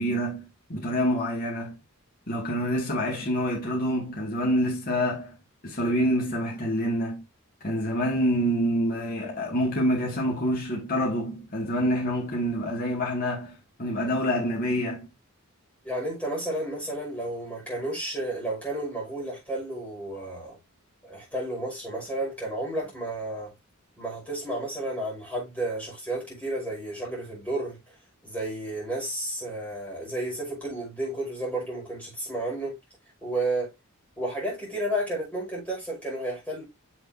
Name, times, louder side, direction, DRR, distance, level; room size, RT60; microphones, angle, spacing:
voice 1, 0.0-1.8 2.3-7.2 7.6-15.1, equal, 45° left, 2.4 m, -27 dB
voice 2, 15.8-20.6 21.0-23.5 24.0-27.8 28.2-32.7 33.2-33.7 34.2-36.6, right 1 dB, 5° left, 5.9 m, -32 dB
7.3 x 6.6 x 2.8 m
head